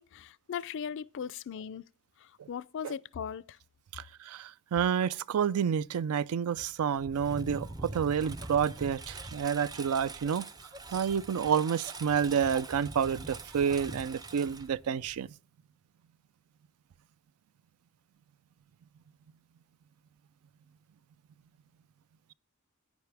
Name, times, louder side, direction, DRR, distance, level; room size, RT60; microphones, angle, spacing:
voice 1, 0.0-1.8 2.5-3.4, left 7 dB, 60° left, 0.4 m, -38 dB
voice 2, 3.9-10.4 10.9-15.3, right 7 dB, 80° right, 0.4 m, -29 dB
Engine, 6.6-15.3, right 2 dB, 20° right, 0.4 m, -44 dB
10.5 x 9.5 x 3.4 m
head